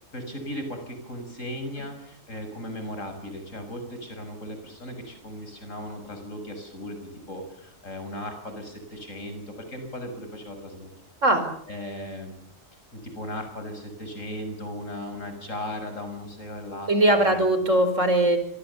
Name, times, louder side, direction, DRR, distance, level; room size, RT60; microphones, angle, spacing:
voice 1, 0.1-10.9 11.7-12.3 12.9-17.4, left 1 dB, 75° left, 6 dB, 7.1 m, -37 dB
voice 2, 16.9-18.4, right 1 dB, 70° right, 9 dB, 5.2 m, -20 dB
27.5 x 23.0 x 7.1 m, 0.63 s
omnidirectional pair, 1.4 m